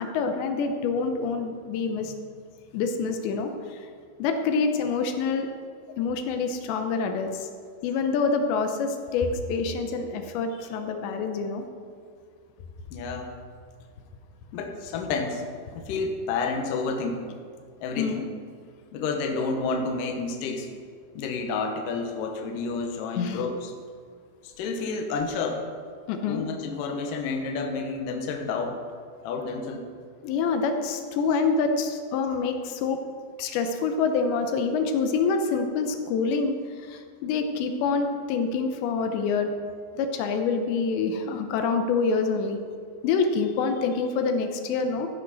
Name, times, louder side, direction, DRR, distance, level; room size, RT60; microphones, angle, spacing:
voice 1, 0.0-2.1 2.7-3.8 4.2-5.5 6.0-7.5 7.8-11.6 18.0-18.3 23.2-23.5 26.1-26.5 30.2-33.0 33.4-39.5 39.9-42.6 43.0-45.1, left 4 dB, 85° left, 6 dB, 3.1 m, -26 dB
voice 2, 12.9-13.3 14.5-15.4 15.7-17.2 17.8-18.3 18.9-20.7 21.1-23.7 24.4-25.7 26.3-28.8 29.2-29.8, left 4 dB, 65° left, 3 dB, 2.4 m, -30 dB
15.0 x 10.5 x 4.1 m, 2.1 s
omnidirectional pair, 4.9 m